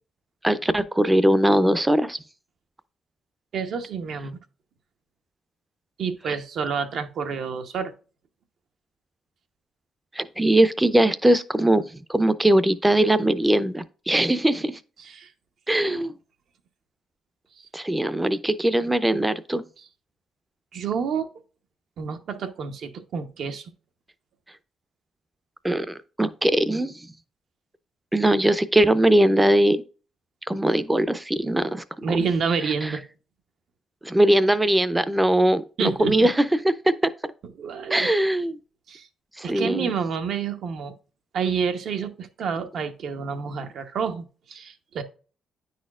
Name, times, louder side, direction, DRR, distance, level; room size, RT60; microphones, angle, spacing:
voice 1, 0.4-2.2 10.2-14.8 15.7-16.1 17.7-19.6 25.6-26.9 28.1-29.8 30.5-32.2 32.8-32.9 34.0-36.4 37.9-38.5 39.4-39.9, right 1 dB, 10° right, 0.5 m, -21 dB
voice 2, 3.5-4.4 6.0-7.9 15.0-15.3 15.8-16.0 19.8-19.9 20.7-21.3 22.0-23.7 32.0-33.0 35.8-36.3 37.6-38.1 38.9-39.1 39.4-41.0 41.3-45.0, right 6 dB, 65° right, 0.8 m, -29 dB
9.4 x 4.2 x 2.4 m
cardioid pair, 90°, 0 cm